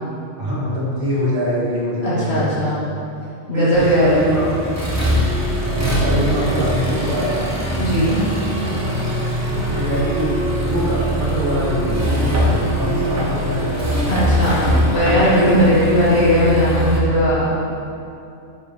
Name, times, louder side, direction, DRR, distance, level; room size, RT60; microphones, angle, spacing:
voice 1, 0.4-2.7 3.5-4.7 5.6-7.6 9.5-10.3 10.6-14.5, equal, 45° right, -7 dB, 1.8 m, -23 dB
voice 2, 2.0-2.8 3.5-4.1 7.8-8.2 14.1-17.5, equal, 60° left, -9 dB, 1.3 m, -17 dB
Accelerating revving vroom, 3.7-17.0, equal, 15° right, 0.7 m, -22 dB
4.9 x 4.8 x 5.2 m, 2.7 s
omnidirectional pair, 1.3 m